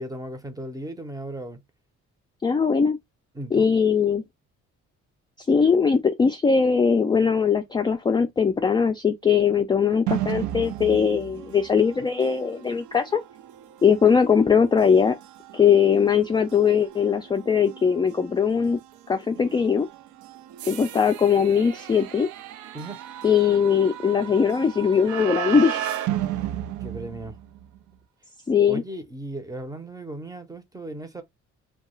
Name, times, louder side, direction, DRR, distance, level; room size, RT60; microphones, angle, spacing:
voice 1, 0.0-1.6 3.3-3.7 22.7-23.0 26.2-27.4 28.6-31.2, right 1 dB, 10° right, 0.7 m, -36 dB
voice 2, 2.4-3.0 3.5-4.2 5.5-13.2 13.8-15.2 15.5-18.8 19.1-19.9 20.7-22.3 23.2-25.9 28.5-28.8, left 6 dB, 15° left, 0.3 m, -20 dB
sound 1, 10.1-27.8, right 12 dB, 75° right, 0.5 m, -35 dB
2.3 x 2.2 x 3.0 m
cardioid pair, 90°, 30 cm